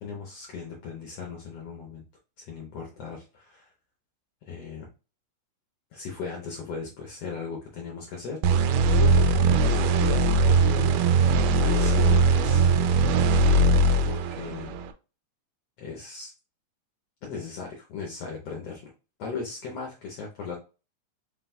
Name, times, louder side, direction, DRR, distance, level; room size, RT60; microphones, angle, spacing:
voice 1, 0.0-2.1 2.4-3.7 4.5-4.9 5.9-11.2 11.6-12.7 14.1-14.7 15.8-16.3 17.2-18.9 19.2-20.6, left 5 dB, 70° left, 0 dB, 1.7 m, -37 dB
sound 1, 8.4-14.9, right 2 dB, 85° right, 2.1 m, -20 dB
4.9 x 3.9 x 2.2 m, 0.32 s
omnidirectional pair, 3.6 m